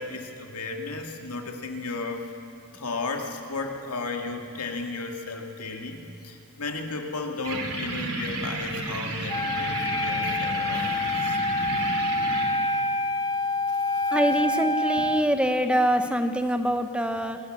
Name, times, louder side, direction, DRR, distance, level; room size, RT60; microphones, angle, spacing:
voice 1, 0.0-2.3 2.7-11.4 13.7-14.4, left 3 dB, 85° left, 3 dB, 2.1 m, -34 dB
sound 1, 7.4-12.4, right 3 dB, 80° right, 3.1 m, -32 dB
Wind instrument woodwind instrument, 9.3-15.3, left 2 dB, 15° left, 0.5 m, -27 dB
voice 2, 14.1-17.4, equal, 5° right, 8 dB, 0.9 m, -24 dB
26.5 x 13.0 x 7.6 m, 2.8 s
head